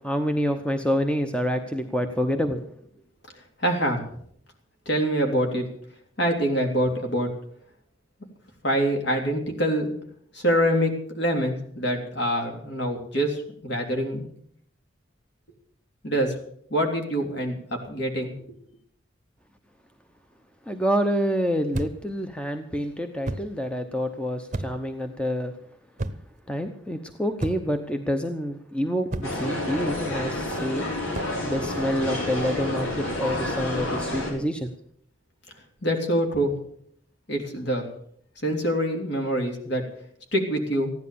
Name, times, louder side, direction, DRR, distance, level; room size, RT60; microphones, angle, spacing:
voice 1, 0.0-2.6 20.7-25.5 26.5-30.8 31.5-34.7, equal, 5° left, 6 dB, 0.8 m, -27 dB
voice 2, 3.6-4.0 4.8-5.7 6.2-7.3 8.6-9.9 10.3-14.3 16.0-16.3 16.7-18.3 35.8-36.6 37.3-37.9 38.4-39.8 40.3-40.9, equal, 55° left, 3 dB, 3.2 m, -25 dB
sound 1, 21.7-22.1 23.2-23.6 24.5-24.9 26.0-26.4 27.4-27.8 29.1-29.5 31.1-31.4, right 2 dB, 35° right, 0.8 m, -32 dB
sound 2, 29.2-34.3, left 1 dB, 90° left, 4.7 m, -29 dB
15.0 x 11.0 x 6.9 m, 0.65 s
head